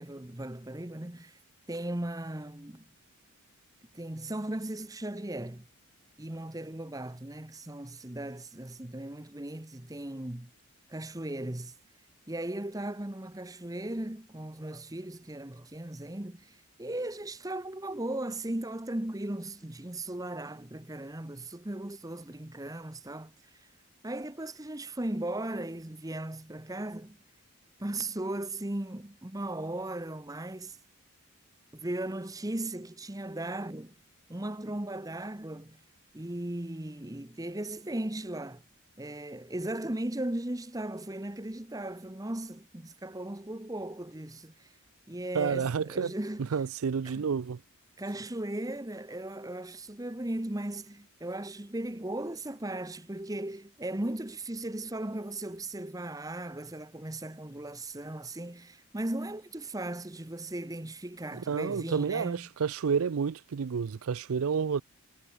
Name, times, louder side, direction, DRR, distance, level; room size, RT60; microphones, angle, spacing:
voice 1, 0.0-1.4 1.7-2.8 3.9-5.7 6.2-10.5 10.9-11.7 12.3-23.3 24.0-27.2 27.8-30.8 31.7-33.9 34.3-35.8 36.1-38.6 39.0-44.7 45.1-46.6 47.0-47.3 48.0-62.5, right 1 dB, 15° right, 0.9 m, -37 dB
voice 2, 45.3-46.1 46.5-47.6 61.3-64.8, right 6 dB, 75° right, 0.4 m, -30 dB
head